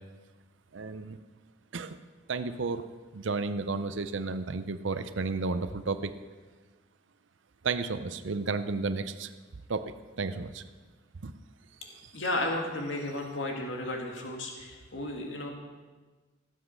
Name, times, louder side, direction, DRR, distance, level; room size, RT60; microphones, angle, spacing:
voice 1, 0.7-1.2 1.7-2.0 2.3-2.8 3.1-6.1 7.6-9.3 9.7-10.6 11.2-11.3, right 4 dB, 65° right, 11 dB, 0.6 m, -32 dB
voice 2, 12.1-15.5, left 1 dB, 65° left, 1 dB, 1.9 m, -33 dB
16.0 x 7.5 x 6.3 m, 1.3 s
head